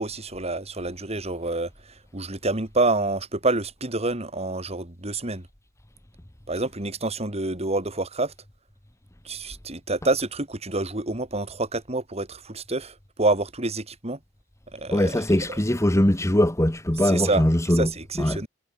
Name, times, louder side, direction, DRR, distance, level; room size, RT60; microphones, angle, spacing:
voice 1, 0.0-1.7 2.1-5.5 6.5-8.3 9.2-14.2 14.7-15.2 15.5-15.6 17.0-18.5, right 2 dB, 35° right, 3.3 m, -27 dB
voice 2, 14.9-17.9 18.2-18.4, left 1 dB, 15° left, 1.4 m, -21 dB
head